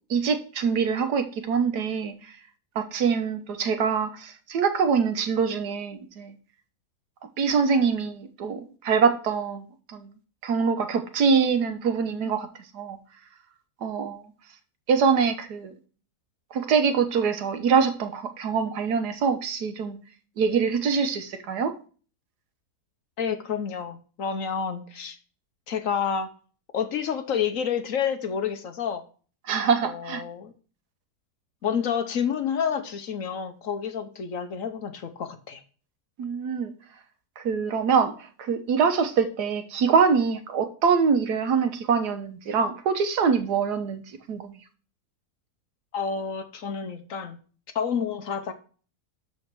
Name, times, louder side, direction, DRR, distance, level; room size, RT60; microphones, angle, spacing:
voice 1, 0.1-2.3 2.7-6.4 7.4-10.1 10.4-13.0 13.8-14.3 14.9-15.8 16.5-20.0 20.4-21.8 29.4-30.2 36.2-36.7 37.4-44.6, right 6 dB, 85° right, 1.6 m, -24 dB
voice 2, 23.2-25.2 25.7-26.3 26.7-29.0 29.8-30.5 31.6-35.6 45.9-47.4 47.7-48.5, left 7 dB, 60° left, 1.2 m, -29 dB
12.5 x 4.3 x 4.7 m
omnidirectional pair, 1.7 m